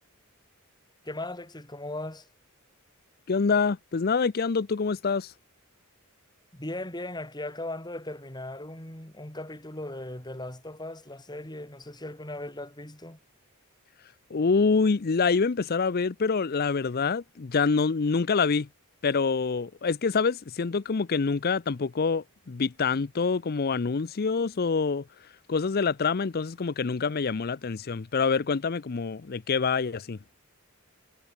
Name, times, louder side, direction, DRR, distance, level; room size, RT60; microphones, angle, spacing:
voice 1, 1.0-2.3 6.5-13.2, left 1 dB, 20° left, 4.5 m, -38 dB
voice 2, 3.3-5.3 14.3-18.7 19.0-25.0 25.5-30.2, left 5 dB, 45° left, 0.5 m, -26 dB
head